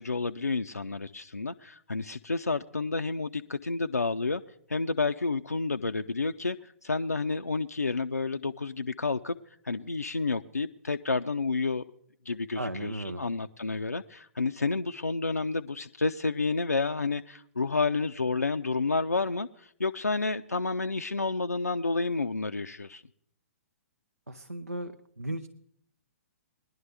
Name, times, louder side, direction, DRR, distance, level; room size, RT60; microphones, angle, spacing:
voice 1, 0.0-4.4 4.7-9.4 9.6-11.8 12.3-23.0, left 3 dB, 85° left, 0.4 m, -30 dB
voice 2, 12.6-13.2 24.3-24.9 25.2-25.5, right 1 dB, 90° right, 0.6 m, -35 dB
20.0 x 11.0 x 3.3 m
figure-of-eight pair, 120°, 8 cm